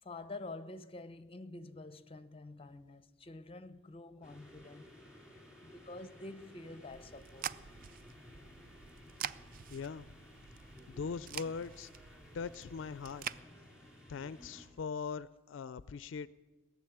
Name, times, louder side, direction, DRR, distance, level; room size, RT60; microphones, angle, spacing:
voice 1, 0.0-4.9 5.6-7.5, left 2 dB, 30° left, 0.6 m, -48 dB
sound 1, 4.2-14.7, left 1 dB, 5° right, 2.9 m, -56 dB
sound 2, 6.9-13.4, right 9 dB, 45° right, 0.4 m, -46 dB
voice 2, 9.7-10.1 10.9-11.9 12.3-13.4 14.1-16.3, left 5 dB, 70° left, 0.4 m, -41 dB
18.0 x 7.4 x 9.9 m
head